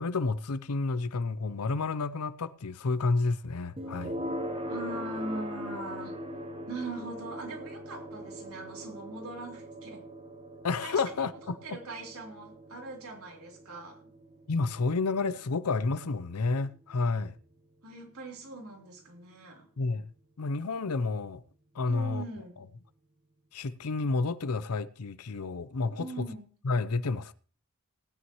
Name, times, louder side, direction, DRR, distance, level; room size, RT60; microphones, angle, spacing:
voice 1, 0.0-4.1 10.6-11.6 14.5-17.3 19.8-20.1 20.4-21.4 21.7-22.2 23.5-26.3 26.6-27.3, left 3 dB, 90° left, 0.7 m, -30 dB
sound 1, 3.8-18.7, equal, 25° right, 0.9 m, -41 dB
voice 2, 4.7-6.2 6.7-10.1 10.8-11.1 11.4-14.0 17.8-19.7 21.9-22.6 26.0-26.5, right 2 dB, 75° right, 3.5 m, -41 dB
19.0 x 9.6 x 3.1 m
head